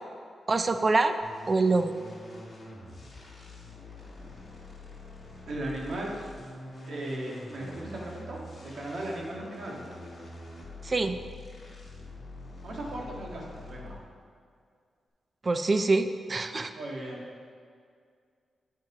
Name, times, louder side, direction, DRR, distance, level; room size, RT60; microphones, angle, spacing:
voice 1, 0.5-1.1 1.5-1.9 10.8-11.2 15.4-16.7, right 3 dB, 30° right, 9 dB, 0.4 m, -25 dB
sound 1, 1.2-14.2, left 1 dB, 35° left, 2.0 m, -45 dB
voice 2, 5.5-6.1 6.9-9.8 12.6-14.0 16.7-17.2, right 1 dB, 65° right, -2 dB, 1.6 m, -37 dB
8.6 x 4.6 x 4.9 m, 2.1 s
wide cardioid pair, 120°, 0 cm